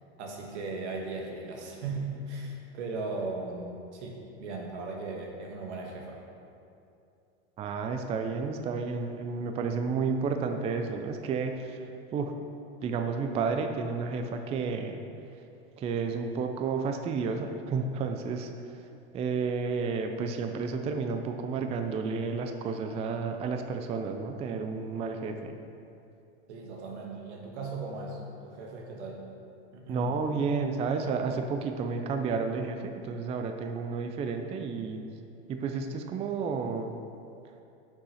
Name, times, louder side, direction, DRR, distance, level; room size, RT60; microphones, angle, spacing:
voice 1, 0.2-6.2 26.5-29.2 29.7-30.2, right 3 dB, 85° right, 0 dB, 1.6 m, -37 dB
voice 2, 7.6-11.8 12.1-12.3 12.8-15.0 15.8-18.5 19.1-25.6 29.9-35.0 35.5-36.9, right 5 dB, 20° right, 5 dB, 0.3 m, -31 dB
6.9 x 5.4 x 5.6 m, 2.6 s
supercardioid pair, 125°, 33 cm